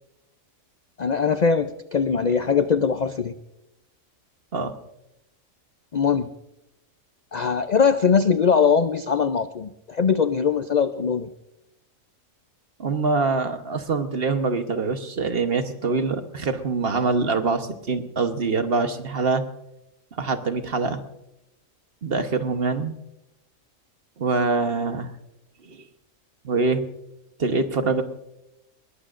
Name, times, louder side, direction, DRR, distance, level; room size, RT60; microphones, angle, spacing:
voice 1, 1.0-3.3 5.9-6.3 7.3-11.3, left 6 dB, 55° left, 10 dB, 0.4 m, -21 dB
voice 2, 12.8-19.4 20.2-21.0 22.0-22.9 24.2-25.1 25.6-25.8 26.4-26.8 27.4-28.0, right 4 dB, 50° right, 8 dB, 1.2 m, -24 dB
21.5 x 21.0 x 2.5 m, 0.88 s
omnidirectional pair, 1.4 m